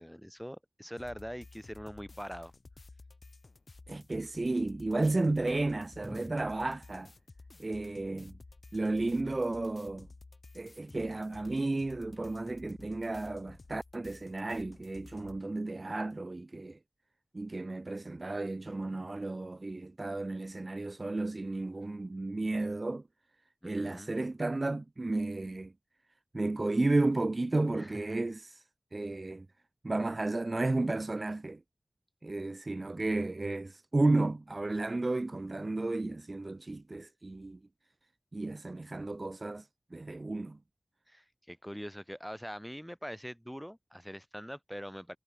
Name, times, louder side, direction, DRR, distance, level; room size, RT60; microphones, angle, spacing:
voice 1, 0.0-2.5 6.0-6.3 23.6-24.1 27.8-28.2 41.1-45.2, equal, ahead, 4.8 m, -43 dB
sound 1, 1.0-15.4, left 3 dB, 55° left, 5.1 m, -53 dB
voice 2, 3.9-7.1 7.6-8.3 8.7-10.1 10.5-16.8 17.3-23.0 23.6-25.7 26.3-28.6 28.9-29.5 29.8-31.6 32.2-37.6 38.3-39.7 39.9-40.6, right 2 dB, 45° right, 1.1 m, -33 dB
wide cardioid pair, 55°, 0 cm